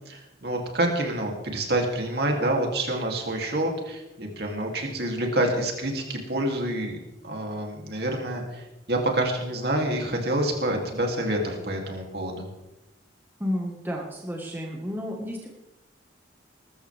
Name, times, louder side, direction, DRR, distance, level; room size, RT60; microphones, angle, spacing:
voice 1, 0.1-7.0 7.2-12.5, right 1 dB, 55° right, 1 dB, 3.1 m, -27 dB
voice 2, 13.4-15.5, equal, 10° right, -1 dB, 1.7 m, -31 dB
21.5 x 13.5 x 3.6 m, 0.97 s
head